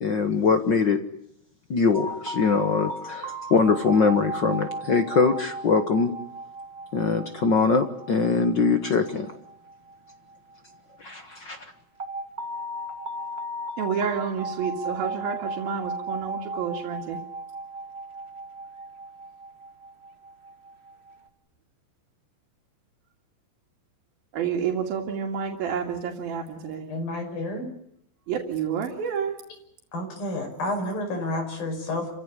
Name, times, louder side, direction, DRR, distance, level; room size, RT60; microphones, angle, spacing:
voice 1, 0.0-1.0 1.7-6.1 6.9-9.3 11.0-11.7, left 4 dB, 60° left, 8 dB, 1.1 m, -22 dB
sound 1, 1.9-10.8 12.0-21.2, right 1 dB, 20° right, 1.8 m, -36 dB
voice 2, 13.8-17.2 24.3-26.8 28.3-29.3, right 7 dB, 90° right, 1 dB, 4.1 m, -29 dB
voice 3, 26.9-27.7 29.9-32.1, left 1 dB, 80° left, 4 dB, 7.4 m, -30 dB
28.5 x 16.0 x 9.9 m, 0.77 s
omnidirectional pair, 4.1 m